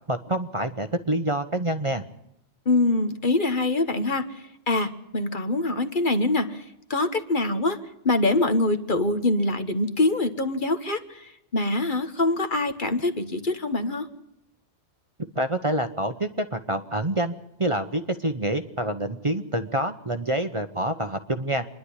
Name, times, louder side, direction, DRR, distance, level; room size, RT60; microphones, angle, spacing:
voice 1, 0.1-2.0 15.3-21.7, right 1 dB, 30° right, 8 dB, 1.0 m, -27 dB
voice 2, 2.6-6.6 6.9-7.8 8.0-14.1, left 2 dB, 45° left, 8 dB, 1.5 m, -24 dB
26.5 x 11.0 x 9.9 m, 0.82 s
omnidirectional pair, 1.2 m